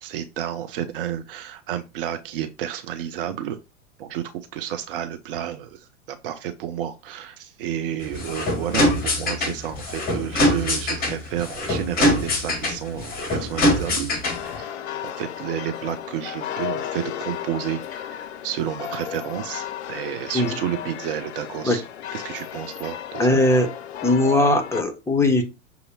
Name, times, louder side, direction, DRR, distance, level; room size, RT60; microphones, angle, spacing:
voice 1, 0.0-3.6 4.0-14.1 14.4-21.8 22.1-23.4, right 10 dB, 45° right, 0.6 m, -31 dB
sound 1, 8.0-14.6, left 1 dB, 20° left, 1.5 m, -23 dB
sound 2, 14.2-24.8, left 10 dB, 55° left, 0.6 m, -34 dB
voice 2, 23.2-23.7 24.0-25.4, left 1 dB, 5° left, 0.8 m, -19 dB
6.4 x 2.7 x 2.6 m
figure-of-eight pair, 90°, 39 cm